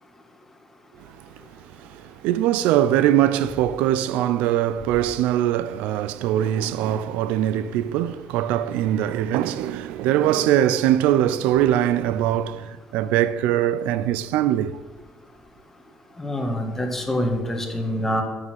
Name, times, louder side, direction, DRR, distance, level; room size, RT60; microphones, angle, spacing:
voice 1, 2.2-14.8, right 11 dB, 90° right, 0.4 m, -22 dB
voice 2, 16.2-18.2, equal, 15° left, 1.8 m, -25 dB
7.2 x 6.4 x 7.8 m
cardioid pair, 105°, 2 cm